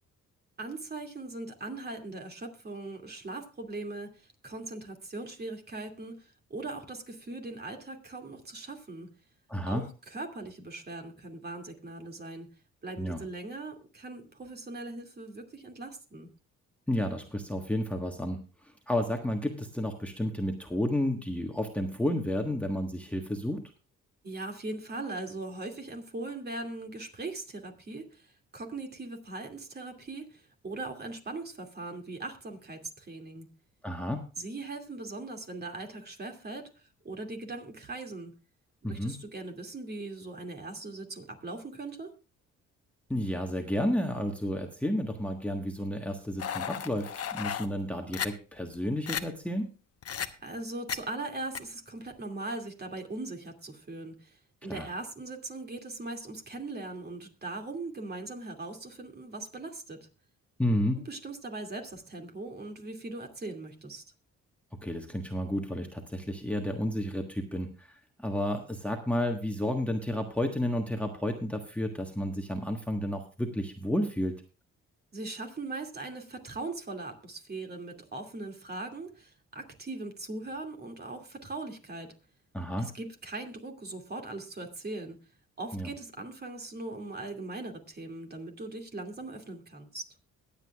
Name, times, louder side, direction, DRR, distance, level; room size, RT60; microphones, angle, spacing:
voice 1, 0.6-9.1 9.7-12.5 12.8-16.3 24.2-33.5 34.4-36.7 37.0-38.3 38.8-42.1 50.4-60.1 61.0-64.0 75.1-82.1 82.8-85.2 85.6-90.1, right 2 dB, 35° right, 3 dB, 2.5 m, -40 dB
voice 2, 9.5-9.8 13.0-13.2 16.9-18.4 18.9-23.6 33.8-34.2 38.8-39.2 43.1-49.7 54.6-54.9 60.6-61.0 64.8-74.3 82.5-82.9 85.7-85.9, left 1 dB, 5° left, 3 dB, 1.4 m, -31 dB
sound 1, 46.4-47.7 48.1-48.3 48.7-48.8 49.1-49.2 50.0-50.3 50.9-51.0 51.5-51.6, left 8 dB, 50° left, 1.0 m, -34 dB
22.0 x 8.4 x 2.4 m, 0.34 s
cardioid pair, 90°, 30 cm